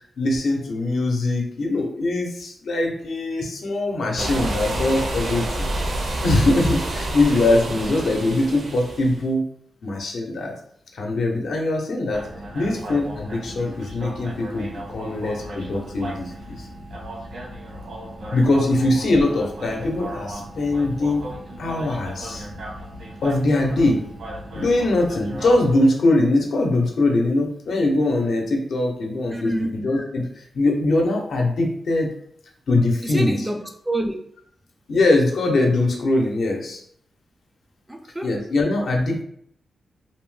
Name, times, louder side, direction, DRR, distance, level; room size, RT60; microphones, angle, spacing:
voice 1, 0.2-5.7 6.2-9.4 9.8-10.5 10.9-12.2 12.5-16.7 18.3-21.2 21.6-22.5 23.2-24.0 24.5-32.1 32.7-33.3 34.9-36.8 38.2-39.2, left 2 dB, 70° left, 0.6 m, -22 dB
sound 1, 4.2-9.2, right 1 dB, 60° right, 0.5 m, -28 dB
sound 2, 12.1-25.8, right 1 dB, 80° right, 1.0 m, -36 dB
voice 2, 29.3-29.7 33.0-34.2 37.9-38.4, right 1 dB, 10° right, 0.3 m, -27 dB
2.6 x 2.1 x 3.1 m
wide cardioid pair, 115°, 0 cm